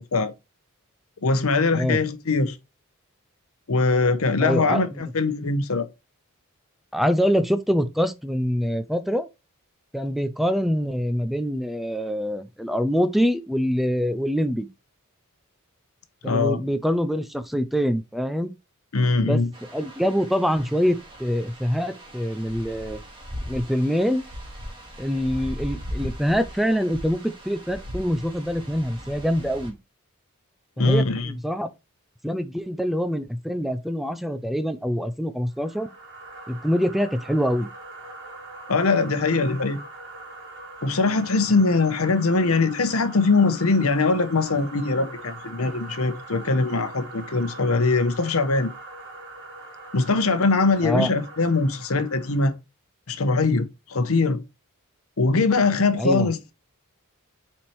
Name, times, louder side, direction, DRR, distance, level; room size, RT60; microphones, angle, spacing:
voice 1, 1.2-2.6 3.7-5.9 16.2-16.6 18.9-19.5 30.8-31.3 38.7-39.8 40.8-48.7 49.9-52.5 53.1-54.4 55.2-56.5, left 3 dB, 75° left, 0.9 m, -22 dB
voice 2, 4.4-4.9 6.9-9.3 9.9-14.7 16.2-18.5 19.2-19.4 19.7-23.0 23.5-24.2 25.0-29.8 30.8-31.7 32.2-35.9 36.5-37.7 50.8-51.1 56.0-56.3, equal, ahead, 0.4 m, -25 dB
sound 1, 19.5-29.7, equal, 25° right, 1.9 m, -38 dB
sound 2, 35.5-52.6, right 2 dB, 55° right, 2.3 m, -42 dB
7.3 x 4.3 x 3.2 m
head